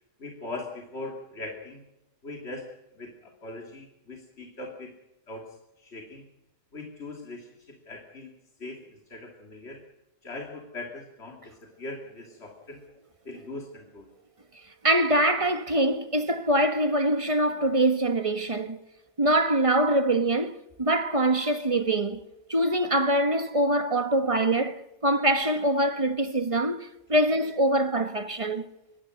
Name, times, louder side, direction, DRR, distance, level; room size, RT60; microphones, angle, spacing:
voice 1, 0.2-1.8 2.2-2.7 2.9-5.0 5.3-6.3 6.7-8.3 8.6-9.8 10.2-12.8 13.2-14.1, left 2 dB, 60° left, 3.1 m, -40 dB
voice 2, 14.8-18.8 19.2-22.2 22.5-28.7, right 1 dB, 25° right, 1.5 m, -24 dB
24.5 x 19.5 x 6.6 m
omnidirectional pair, 1.3 m